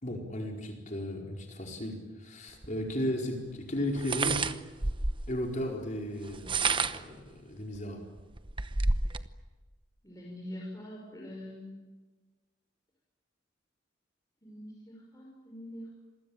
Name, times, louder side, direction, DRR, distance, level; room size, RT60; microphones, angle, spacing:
voice 1, 0.0-4.5 5.3-8.0, left 1 dB, 40° left, 1 dB, 4.6 m, -35 dB
sound 1, 2.6-2.7 4.0-5.3 6.3-7.1 7.8-7.9 8.2-9.3, right 3 dB, 25° right, 1.0 m, -30 dB
voice 2, 10.0-11.9 14.4-15.9, left 1 dB, 20° left, -2 dB, 5.6 m, -44 dB
27.5 x 23.0 x 8.8 m, 1.3 s
head